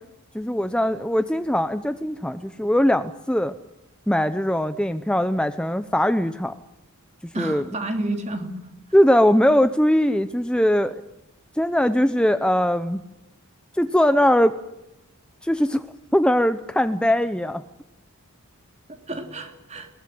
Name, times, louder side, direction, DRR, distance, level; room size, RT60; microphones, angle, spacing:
voice 1, 0.3-3.5 4.1-6.6 7.4-7.6 8.9-11.0 11.5-13.0 13.7-14.5 15.4-15.9 16.1-17.6, equal, 5° left, 10 dB, 0.7 m, -20 dB
voice 2, 7.3-8.6 19.1-19.9, right 2 dB, 30° right, 5 dB, 3.1 m, -30 dB
22.0 x 20.0 x 7.8 m, 0.90 s
head